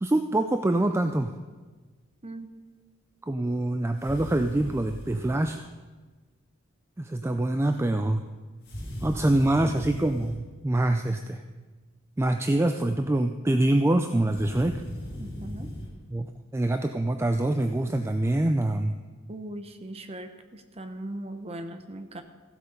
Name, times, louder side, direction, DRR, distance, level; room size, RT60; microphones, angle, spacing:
voice 1, 0.0-1.3 3.3-5.7 7.0-8.2 9.0-11.4 12.2-14.8 16.1-16.3 16.5-18.9, right 1 dB, 10° right, 7 dB, 0.3 m, -25 dB
sound 1, 4.0-5.5 8.6-10.4 14.3-15.9, equal, 50° left, 4.2 m, -38 dB
voice 2, 15.2-15.7 19.3-22.2, right 1 dB, 30° right, 8 dB, 0.8 m, -39 dB
15.0 x 7.7 x 5.3 m, 1.4 s
head